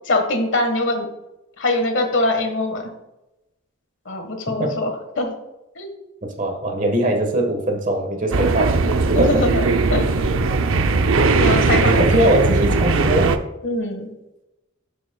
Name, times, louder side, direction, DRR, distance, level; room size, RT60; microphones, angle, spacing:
voice 1, 0.0-1.1 1.6-2.9 4.0-5.3 5.7-5.9 9.1-10.0 11.4-12.2 13.6-14.1, left 2 dB, 65° left, 5 dB, 1.5 m, -23 dB
voice 2, 6.4-8.8 9.2-9.4 11.4-11.6 12.0-13.3, right 1 dB, 40° right, 3 dB, 1.4 m, -21 dB
sound 1, 8.3-13.4, right 3 dB, 85° right, 0.6 m, -18 dB
11.5 x 7.2 x 2.3 m, 0.95 s
head